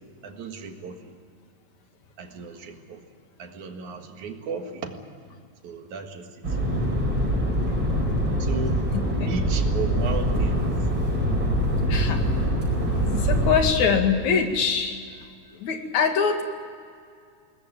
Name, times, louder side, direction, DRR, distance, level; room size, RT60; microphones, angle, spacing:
voice 1, 0.2-1.1 2.2-3.0 3.4-5.0 5.6-6.4 8.4-8.8 9.3-10.7, right 5 dB, 90° right, 5 dB, 3.2 m, -35 dB
sound 1, 6.4-13.6, equal, 40° right, 5.7 m, -24 dB
voice 2, 8.9-9.3 11.9-12.2 13.0-15.0 15.5-16.4, left 6 dB, 75° left, 5 dB, 3.4 m, -24 dB
21.5 x 19.0 x 9.3 m, 2.2 s
omnidirectional pair, 3.3 m